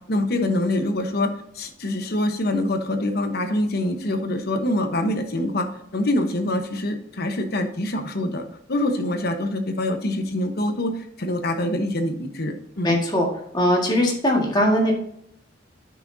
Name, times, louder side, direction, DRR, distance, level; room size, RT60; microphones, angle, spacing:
voice 1, 0.1-5.7 5.9-13.0, left 1 dB, 55° left, 6 dB, 1.0 m, -25 dB
voice 2, 12.8-13.3 13.5-14.9, left 1 dB, 20° left, 0 dB, 1.8 m, -20 dB
9.8 x 6.2 x 2.7 m, 0.72 s
head